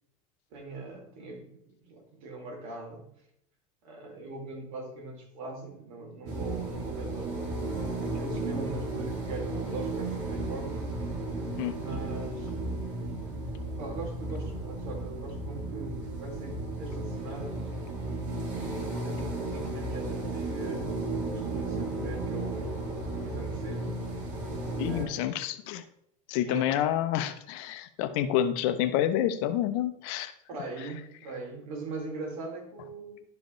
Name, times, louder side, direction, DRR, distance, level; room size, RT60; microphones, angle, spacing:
voice 1, 0.5-1.6 1.9-3.0 3.8-7.5 8.0-10.8 11.7-12.5 13.8-17.6 18.5-24.0 24.8-25.4 26.4-26.7 30.5-33.2, right 3 dB, 85° right, 0 dB, 2.9 m, -41 dB
sound 1, 6.3-25.0, right 2 dB, 50° right, 2.1 m, -34 dB
voice 2, 24.8-25.8 26.3-30.3, left 11 dB, 60° left, 10 dB, 0.7 m, -28 dB
11.5 x 4.9 x 3.1 m, 0.74 s
supercardioid pair, 155°, 17 cm